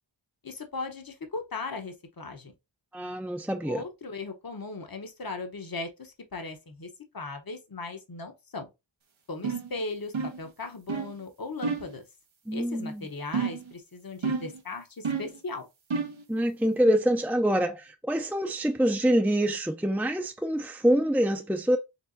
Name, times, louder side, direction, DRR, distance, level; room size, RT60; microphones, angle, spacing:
voice 1, 0.4-2.5 3.6-6.9 7.1-8.7 9.3-12.0 12.5-15.7, left 3 dB, 50° left, 1.0 m, -38 dB
voice 2, 2.9-3.8 12.5-13.0 16.3-21.8, right 1 dB, 5° right, 0.5 m, -25 dB
sound 1, 9.4-9.7 10.1-10.5 10.9-11.1 11.6-11.9 13.3-13.7 14.2-14.6 15.0-15.4 15.9-16.2, right 5 dB, 85° right, 1.0 m, -30 dB
4.6 x 3.4 x 2.6 m
wide cardioid pair, 55°, 46 cm